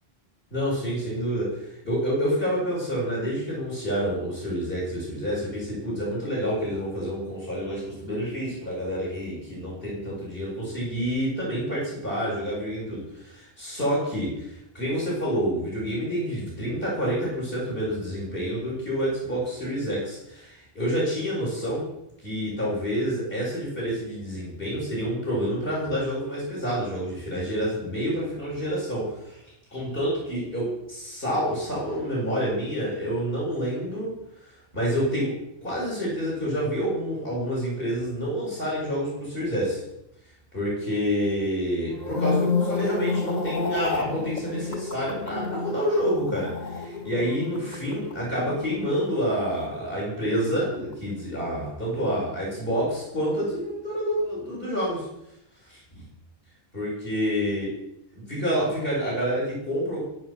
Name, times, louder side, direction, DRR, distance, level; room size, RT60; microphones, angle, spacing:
voice 1, 0.5-21.9 22.2-29.4 29.7-34.1 34.4-35.4 35.6-39.8 40.5-55.1 55.6-56.0 56.7-57.6 58.1-60.0, equal, 60° left, -6 dB, 7.3 m, -28 dB
sound 1, 41.9-50.3 50.6-50.9, left 4 dB, 45° left, 1.4 m, -31 dB
23.5 x 9.3 x 6.1 m, 0.82 s
omnidirectional pair, 1.0 m